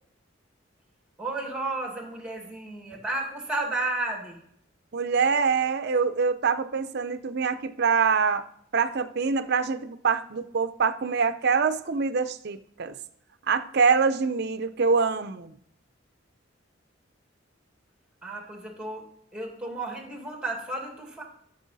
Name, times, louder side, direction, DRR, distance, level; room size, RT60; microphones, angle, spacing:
voice 1, 1.2-4.4 18.2-19.1 19.3-21.2, right 2 dB, 5° right, 1 dB, 2.1 m, -32 dB
voice 2, 4.9-8.4 8.7-13.0 13.5-15.5, right 5 dB, 55° right, 11 dB, 0.6 m, -25 dB
12.5 x 6.9 x 4.1 m, 0.70 s
head